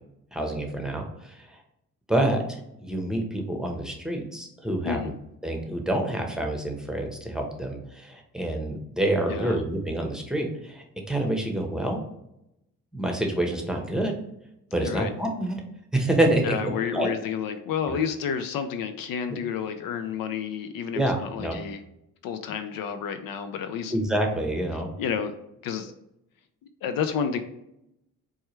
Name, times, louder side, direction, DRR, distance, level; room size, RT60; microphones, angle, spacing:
voice 1, 0.3-1.6 2.1-5.1 5.4-12.0 12.9-14.1 14.7-15.6 15.9-16.5 16.9-17.1 17.9-18.0 20.9-21.6 23.9-24.9, right 1 dB, ahead, 1 dB, 0.9 m, -27 dB
voice 2, 9.3-9.6 14.8-15.1 16.4-21.8 22.2-23.9 25.0-25.3 25.6-25.9 26.8-27.4, left 7 dB, 70° left, 8 dB, 0.5 m, -30 dB
4.5 x 2.3 x 3.1 m, 0.83 s
supercardioid pair, 60°, 36 cm